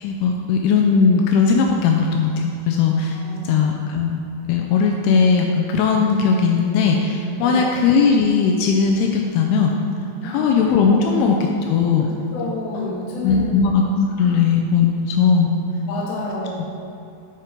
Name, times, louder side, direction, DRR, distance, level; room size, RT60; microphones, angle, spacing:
voice 1, 0.0-3.2 3.4-4.2 4.5-9.7 10.3-11.4 11.7-12.1 12.8-13.0 13.2-15.5, left 5 dB, 90° left, 1 dB, 2.2 m, -18 dB
voice 2, 3.1-3.6 7.4-7.7 10.2-10.5 10.9-11.5 12.0-13.6 14.2-14.4 15.9-16.7, left 2 dB, 75° left, -4 dB, 2.4 m, -30 dB
10.0 x 4.4 x 5.1 m, 2.7 s
omnidirectional pair, 5.2 m